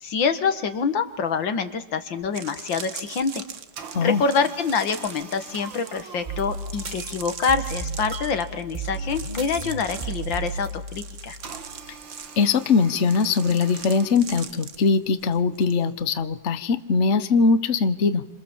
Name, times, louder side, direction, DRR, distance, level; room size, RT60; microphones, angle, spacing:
voice 1, 0.0-3.4 4.0-11.4, left 5 dB, 90° left, 9 dB, 2.4 m, -26 dB
sound 1, 1.7-1.8 2.2-15.7 16.0-16.3, right 6 dB, 45° right, 1.4 m, -41 dB
sound 2, 3.8-7.7 11.4-14.2, right 6 dB, 90° right, 2.5 m, -44 dB
sound 3, 6.3-11.9, right 3 dB, 25° right, 1.4 m, -34 dB
voice 2, 12.4-18.3, left 4 dB, 45° left, 11 dB, 1.3 m, -21 dB
28.5 x 27.0 x 7.4 m, 0.96 s
omnidirectional pair, 2.0 m